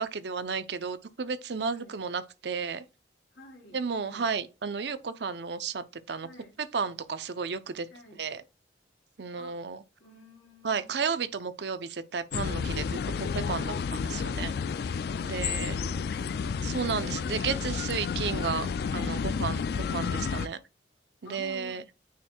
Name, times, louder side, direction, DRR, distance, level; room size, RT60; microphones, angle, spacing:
voice 1, 0.0-2.8 3.7-6.3 6.7-7.9 8.2-8.4 9.2-9.8 10.6-14.5 15.2-15.7 16.6-20.6 21.2-21.8, right 5 dB, 65° right, 0.6 m, -33 dB
voice 2, 1.7-2.0 3.3-4.3 6.2-6.6 7.9-8.2 9.4-9.6 10.0-11.1 15.2-17.7 18.9-19.3 21.2-21.9, equal, 85° left, 2.6 m, -50 dB
sound 1, 12.3-20.5, left 5 dB, 55° left, 0.3 m, -31 dB
9.3 x 4.4 x 2.3 m
head